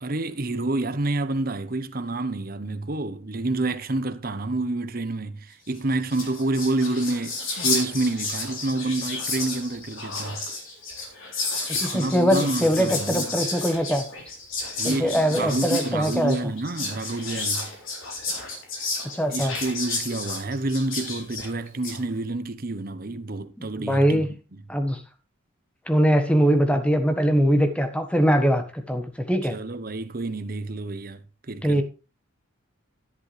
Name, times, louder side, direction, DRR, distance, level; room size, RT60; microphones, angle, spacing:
voice 1, 0.0-7.4 7.6-10.4 11.7-13.3 14.8-17.7 19.3-24.3 29.4-31.8, right 2 dB, 45° right, 0.9 m, -28 dB
Whispering, 5.8-5.9 6.0-22.0, left 3 dB, 75° left, 3.5 m, -31 dB
voice 2, 11.8-14.0 14.8-16.3 19.1-19.5 23.6-24.3 24.7-25.0 25.9-29.6 31.6-31.8, equal, 5° left, 1.3 m, -22 dB
11.0 x 11.0 x 3.3 m
head